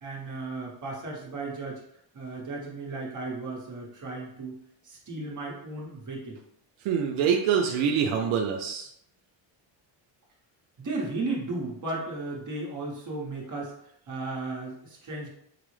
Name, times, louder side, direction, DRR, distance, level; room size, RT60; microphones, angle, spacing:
voice 1, 0.0-1.8 2.1-4.6 4.8-6.4 10.8-13.7 14.1-15.3, right 3 dB, 40° right, -3 dB, 1.0 m, -35 dB
voice 2, 6.8-8.9, right 7 dB, 90° right, 1 dB, 0.6 m, -25 dB
4.8 x 2.0 x 3.1 m, 0.72 s
cardioid pair, 115°, 45 cm